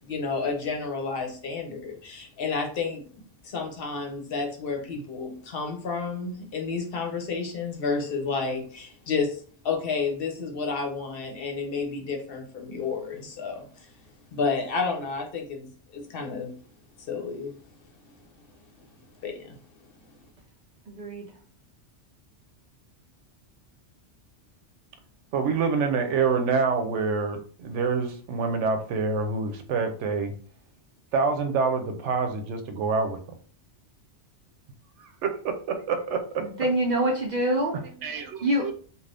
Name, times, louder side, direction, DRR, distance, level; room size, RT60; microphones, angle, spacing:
voice 1, 0.0-14.0 14.3-16.6 17.0-17.5 19.2-19.6, left 4 dB, 60° left, 2 dB, 0.8 m, -31 dB
voice 2, 20.9-21.3 36.4-37.7 38.4-38.6, right 1 dB, 55° right, 0 dB, 0.5 m, -25 dB
voice 3, 25.3-30.3 31.1-33.2 35.0-36.7 38.0-38.7, right 4 dB, 80° right, 6 dB, 0.9 m, -27 dB
2.5 x 2.3 x 3.3 m, 0.42 s
omnidirectional pair, 1.2 m